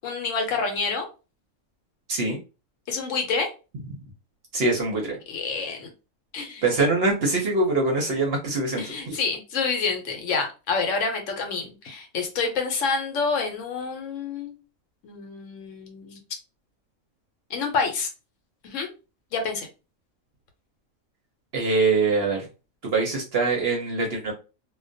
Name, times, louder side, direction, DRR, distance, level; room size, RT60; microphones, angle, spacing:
voice 1, 0.0-1.1 2.9-3.5 5.3-5.9 6.3-6.6 8.8-14.6 15.0-16.2 17.5-18.1 18.6-18.9 19.3-19.7, left 4 dB, 70° left, 4 dB, 0.9 m, -28 dB
voice 2, 4.5-5.2 6.6-9.2 21.5-22.5 22.8-24.3, right 3 dB, 60° right, 1 dB, 0.7 m, -23 dB
2.3 x 2.1 x 2.5 m, 0.31 s
omnidirectional pair, 1.4 m